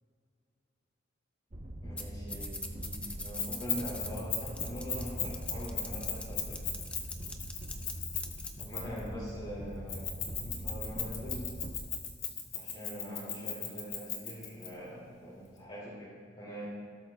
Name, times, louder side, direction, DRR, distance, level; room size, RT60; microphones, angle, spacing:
sound 1, 1.5-11.8, equal, 40° right, 0.8 m, -43 dB
voice 1, 1.8-6.7 8.6-10.1 10.4-11.6 12.5-16.7, equal, 30° left, -8 dB, 2.5 m, -43 dB
sound 2, 2.0-2.1 2.3-8.6, left 2 dB, 5° left, 0.6 m, -43 dB
Keys jangling, 3.4-9.1 9.9-14.7, left 10 dB, 85° left, 1.8 m, -36 dB
17.5 x 12.5 x 2.3 m, 2.2 s
head